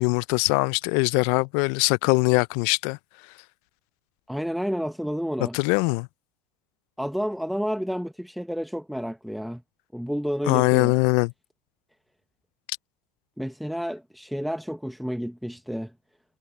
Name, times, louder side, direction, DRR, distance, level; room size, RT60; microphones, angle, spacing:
voice 1, 0.0-3.0 5.5-6.1 10.5-11.3, left 29 dB, 65° left, 0.4 m, -22 dB
voice 2, 4.3-5.6 7.0-9.6 9.9-10.9 13.4-15.9, equal, ahead, 1.0 m, -30 dB
hypercardioid pair, 100°, 0 cm